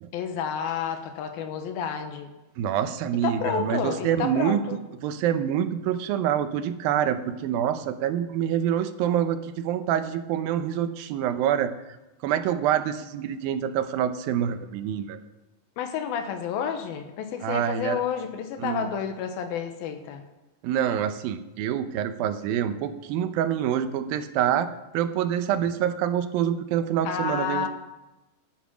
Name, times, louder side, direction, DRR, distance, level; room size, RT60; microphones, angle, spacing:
voice 1, 0.1-2.3 3.2-4.8 15.8-20.2 27.0-27.7, left 7 dB, 85° left, 6 dB, 3.0 m, -30 dB
voice 2, 2.6-4.6 5.0-11.7 12.2-15.2 17.4-18.0 18.6-18.9 20.6-24.7 24.9-27.7, right 10 dB, 85° right, 10 dB, 2.6 m, -26 dB
14.0 x 9.3 x 6.2 m, 1.0 s
omnidirectional pair, 4.1 m